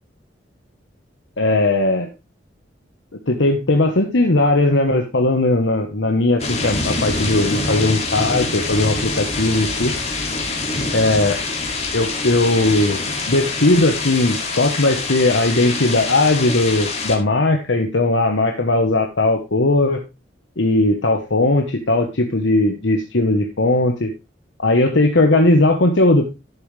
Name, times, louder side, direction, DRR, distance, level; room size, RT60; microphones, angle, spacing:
voice 1, 1.4-2.1 3.3-9.9 10.9-11.4 11.9-20.0 20.6-24.1 24.6-26.3, left 2 dB, 75° left, 4 dB, 1.2 m, -18 dB
sound 1, 6.4-17.2, left 3 dB, 35° left, 2.4 m, -25 dB
12.0 x 7.0 x 3.3 m, 0.26 s
head